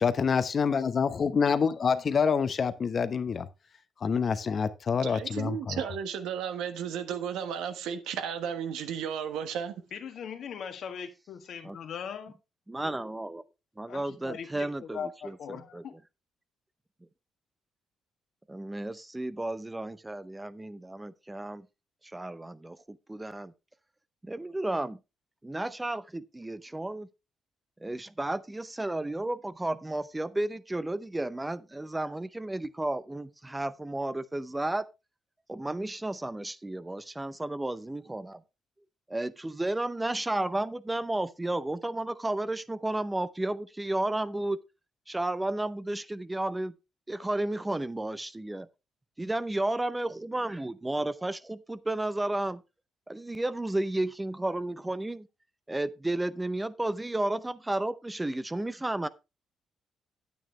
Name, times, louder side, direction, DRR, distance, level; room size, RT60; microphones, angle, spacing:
voice 1, 0.0-3.5 4.0-5.8, left 6 dB, 45° left, 0.9 m, -27 dB
voice 2, 5.0-9.8, right 8 dB, 90° right, 1.4 m, -34 dB
voice 3, 9.9-12.3 13.9-15.9, left 7 dB, 65° left, 1.6 m, -40 dB
voice 4, 12.7-13.4 13.8-15.8 18.5-21.7 22.1-23.5 24.2-25.0 25.4-27.1 27.8-34.9 35.5-38.4 39.1-44.6 45.1-46.7 47.1-48.7 49.2-52.6 53.1-55.3 55.7-59.1, right 1 dB, 15° right, 0.7 m, -32 dB
9.3 x 8.8 x 3.3 m
cardioid pair, 90°, 0 cm